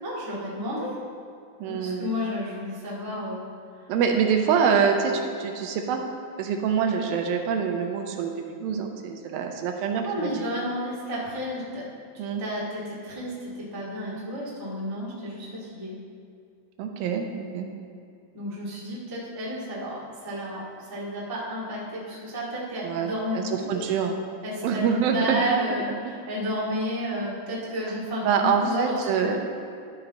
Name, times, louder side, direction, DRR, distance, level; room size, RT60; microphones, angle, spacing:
voice 1, 0.0-1.0 1.6-3.5 10.0-11.8 12.4-16.0 18.3-23.8 24.4-24.8 25.1-28.9 29.2-29.4, equal, 15° right, -8 dB, 0.8 m, -32 dB
voice 2, 1.6-2.1 3.9-6.0 6.4-10.5 12.2-12.4 16.8-17.7 22.8-24.2 24.6-25.4 26.0-26.1 28.2-29.4, right 6 dB, 85° right, 4 dB, 2.5 m, -25 dB
12.5 x 5.5 x 4.0 m, 2.4 s
omnidirectional pair, 4.2 m